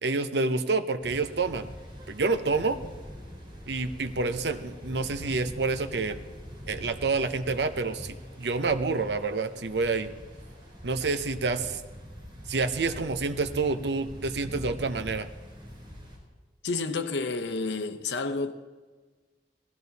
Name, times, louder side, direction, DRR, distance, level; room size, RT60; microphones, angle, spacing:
voice 1, 0.0-1.7 2.1-2.8 3.7-6.2 6.7-10.1 10.8-11.8 12.5-15.3, right 3 dB, 70° right, 0.8 m, -28 dB
sound 1, 1.0-16.2, equal, 25° right, 3.8 m, -44 dB
voice 2, 16.6-18.5, left 3 dB, 80° left, 0.9 m, -30 dB
17.0 x 14.0 x 4.1 m
head